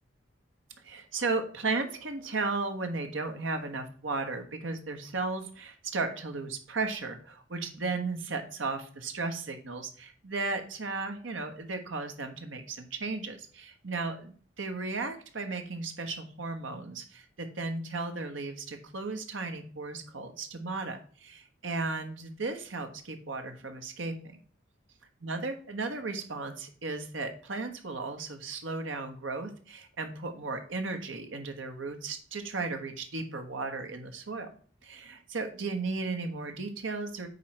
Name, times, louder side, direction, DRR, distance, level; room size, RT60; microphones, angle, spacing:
voice 1, 0.8-24.1 25.2-34.5 34.8-37.3, right 3 dB, 90° right, 6 dB, 1.2 m, -35 dB
9.3 x 3.2 x 5.8 m, 0.43 s
head